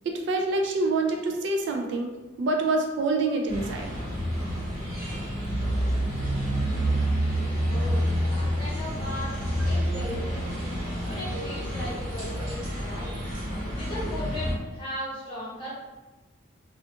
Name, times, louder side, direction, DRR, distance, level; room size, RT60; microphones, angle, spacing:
voice 1, 0.1-3.9, right 2 dB, 60° right, 2 dB, 0.3 m, -26 dB
sound 1, 3.5-14.5, equal, 80° right, 1.1 m, -28 dB
voice 2, 7.7-9.3 9.6-10.5 11.1-13.2 13.7-15.7, equal, 25° left, -7 dB, 0.9 m, -37 dB
2.4 x 2.3 x 2.6 m, 1.2 s
head